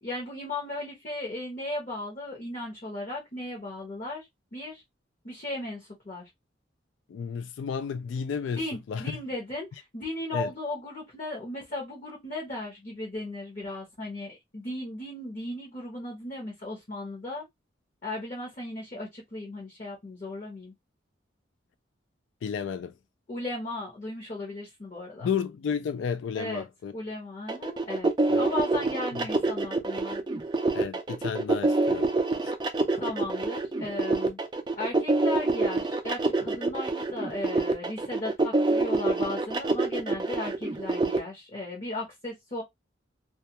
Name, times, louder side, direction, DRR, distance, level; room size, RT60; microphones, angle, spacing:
voice 1, 0.0-4.3 4.5-4.8 5.2-6.3 8.5-17.4 18.0-20.7 23.3-25.3 26.3-26.6 26.9-30.2 33.0-34.4 34.8-42.6, left 2 dB, 40° left, 0.8 m, -36 dB
voice 2, 7.1-8.6 8.9-9.0 10.3-10.5 22.4-22.9 25.2-26.9 28.3-28.4 30.7-32.1 32.4-32.5, left 6 dB, 80° left, 0.3 m, -32 dB
sound 1, 27.5-41.2, right 2 dB, 25° right, 0.4 m, -26 dB
2.3 x 2.2 x 2.7 m
head